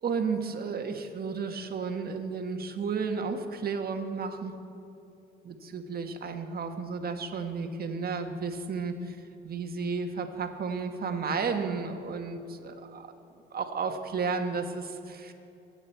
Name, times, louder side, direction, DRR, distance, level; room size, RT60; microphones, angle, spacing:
voice 1, 0.0-4.6 5.4-9.2 9.4-13.1 13.5-15.3, right 5 dB, 50° right, 5 dB, 1.5 m, -33 dB
23.0 x 9.0 x 4.6 m, 2.8 s
cardioid pair, 90°, 20 cm